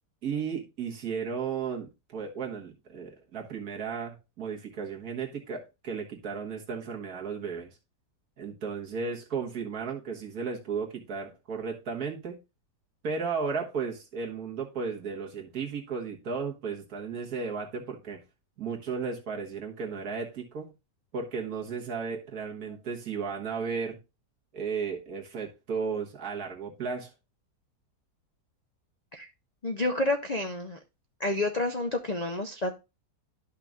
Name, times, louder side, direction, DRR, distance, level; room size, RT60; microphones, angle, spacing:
voice 1, 0.2-7.7 8.4-12.4 13.0-18.2 18.6-20.7 21.1-24.0 24.5-27.1, right 5 dB, 65° right, 1.9 m, -34 dB
voice 2, 29.6-30.8 31.2-32.7, left 2 dB, 85° left, 0.3 m, -29 dB
12.0 x 5.8 x 2.4 m
omnidirectional pair, 1.8 m